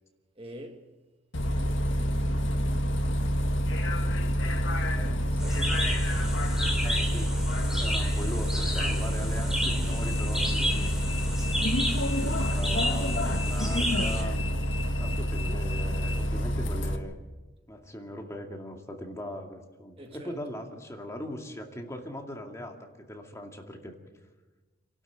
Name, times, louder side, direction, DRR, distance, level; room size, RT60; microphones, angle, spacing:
voice 1, 0.4-0.9 1.9-3.5 4.9-6.7 8.8-9.0 10.3-10.8 20.0-20.4, right 1 dB, 30° right, 1.6 m, -46 dB
Bus, 1.3-17.0, equal, 80° left, 1.7 m, -27 dB
sound 1, 5.4-14.2, equal, 5° right, 3.2 m, -33 dB
voice 2, 6.8-7.3 7.8-10.9 12.2-14.4 15.0-17.2 17.7-23.9, left 1 dB, 15° left, 2.4 m, -40 dB
28.0 x 12.5 x 9.2 m
head